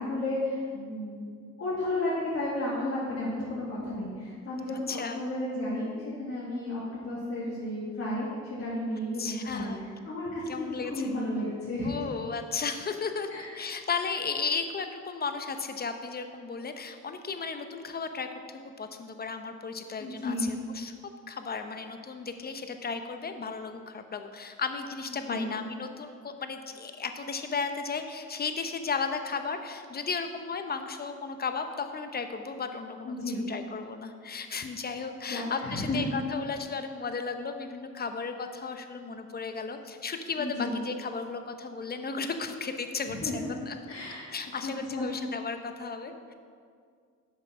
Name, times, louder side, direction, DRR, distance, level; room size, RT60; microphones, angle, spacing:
voice 1, 0.0-1.3 1.6-8.3 8.6-9.7 10.1-11.9 13.3-13.5 20.0-20.5 25.2-25.5 33.0-33.5 35.3-36.0 40.4-40.8 43.0-43.4 43.9-44.2 44.6-45.1, left 1 dB, 50° left, -8 dB, 2.3 m, -33 dB
voice 2, 4.7-5.2 9.2-9.8 10.5-11.1 11.8-20.9 21.3-43.8 44.3-46.3, left 5 dB, 30° left, 7 dB, 0.8 m, -35 dB
7.5 x 5.7 x 6.0 m, 2.1 s
cardioid pair, 90°, 30 cm